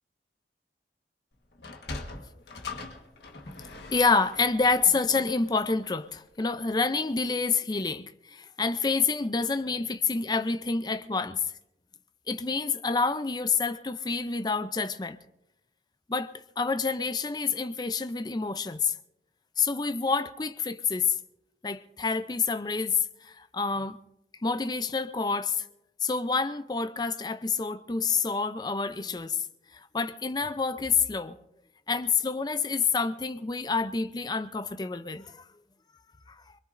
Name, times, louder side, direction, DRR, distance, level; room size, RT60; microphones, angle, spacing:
Sliding door, 1.5-6.1, left 3 dB, 70° left, 1.4 m, -42 dB
voice 1, 3.6-11.4 12.3-15.2 16.1-19.0 19.6-21.1 21.6-24.0 24.4-25.7 26.0-29.5 29.7-31.4 31.9-35.4 36.3-36.6, left 4 dB, 25° left, 0.5 m, -28 dB
23.5 x 22.0 x 2.6 m
head